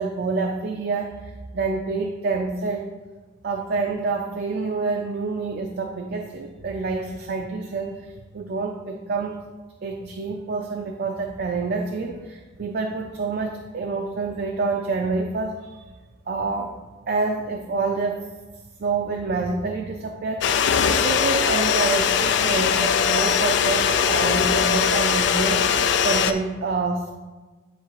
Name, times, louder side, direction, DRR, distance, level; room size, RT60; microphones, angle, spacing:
voice 1, 0.0-2.9 3.4-9.4 9.8-15.8 16.3-16.7 17.1-18.2 18.8-27.1, right 4 dB, 55° right, 2 dB, 0.5 m, -27 dB
sound 1, 20.4-26.3, left 7 dB, 65° left, 0.3 m, -20 dB
9.8 x 3.3 x 3.1 m, 1.3 s
head